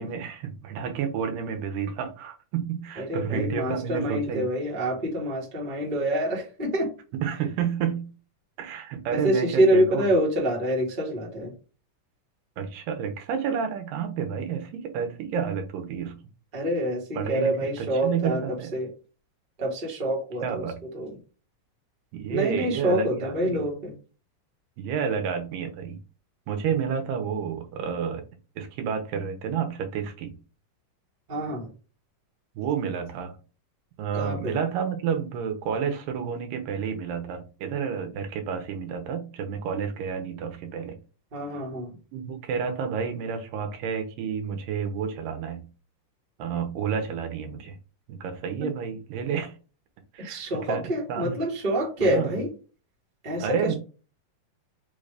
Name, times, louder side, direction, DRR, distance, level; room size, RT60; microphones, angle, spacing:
voice 1, 0.0-4.5 7.2-8.1 8.6-10.1 12.6-16.2 17.2-18.7 20.4-20.8 22.1-23.7 24.8-26.0 26.5-28.2 28.6-30.4 32.6-33.4 34.0-41.0 42.1-45.6 46.4-47.8 48.1-49.5 50.1-50.4 50.7-50.8 51.1-51.3 52.0-52.3 53.4-53.8, right 7 dB, 80° right, 2.5 m, -30 dB
voice 2, 3.0-6.9 9.1-11.5 16.5-18.9 19.6-20.7 20.9-21.1 22.3-23.9 31.3-31.7 34.1-34.6 41.3-41.9 48.6-48.7 50.2-52.5 53.2-53.7, right 1 dB, 30° right, 1.0 m, -26 dB
5.6 x 2.6 x 3.3 m
omnidirectional pair, 3.9 m